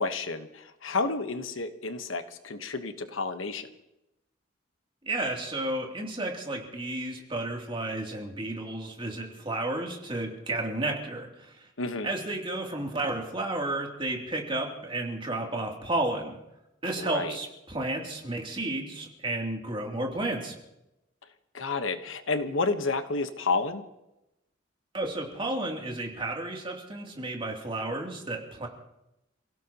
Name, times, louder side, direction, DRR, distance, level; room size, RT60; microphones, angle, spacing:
voice 1, 0.0-3.7 11.8-12.1 17.0-17.4 21.5-23.8, left 3 dB, 85° left, 8 dB, 1.2 m, -30 dB
voice 2, 5.0-11.7 12.0-16.4 16.8-20.6 24.9-28.7, right 2 dB, 25° right, 0 dB, 2.9 m, -32 dB
29.0 x 16.5 x 3.0 m, 0.89 s
head